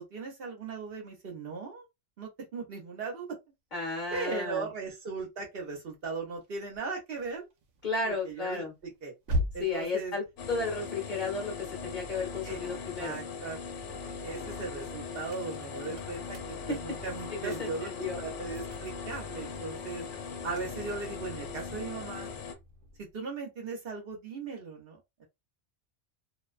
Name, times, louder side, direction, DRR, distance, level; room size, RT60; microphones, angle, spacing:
voice 1, 0.0-1.9 2.2-3.3 4.1-7.5 8.0-9.1 9.5-10.1 12.4-12.6 13.0-20.1 20.4-22.3 23.0-25.3, right 4 dB, 55° right, 0.9 m, -38 dB
voice 2, 3.7-4.7 7.8-8.7 9.6-13.2 16.7-16.8 17.3-18.2, left 3 dB, 45° left, 0.9 m, -33 dB
sound 1, 6.4-12.9 13.4-23.2, equal, 85° right, 0.9 m, -42 dB
sound 2, 10.4-22.5, left 5 dB, 80° left, 0.9 m, -40 dB
2.5 x 2.2 x 2.4 m
omnidirectional pair, 1.2 m